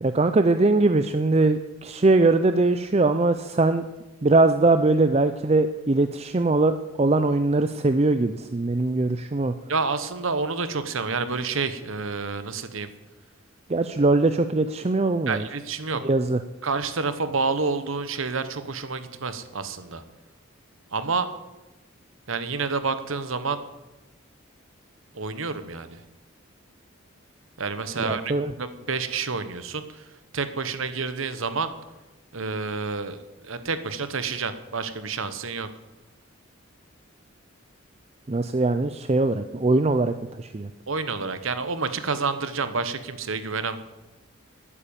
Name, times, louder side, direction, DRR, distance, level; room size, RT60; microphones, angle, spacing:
voice 1, 0.0-3.9 4.2-9.5 13.7-15.5 16.0-16.4 28.0-28.5 38.3-40.7, right 2 dB, 30° right, 10 dB, 0.5 m, -21 dB
voice 2, 9.7-12.9 15.3-16.0 16.6-20.0 20.9-21.3 22.3-23.6 25.1-26.0 27.6-30.1 30.3-31.7 32.3-33.2 33.4-35.7 40.9-43.8, right 4 dB, 70° right, 11 dB, 1.1 m, -29 dB
12.0 x 10.0 x 8.8 m, 1.1 s
head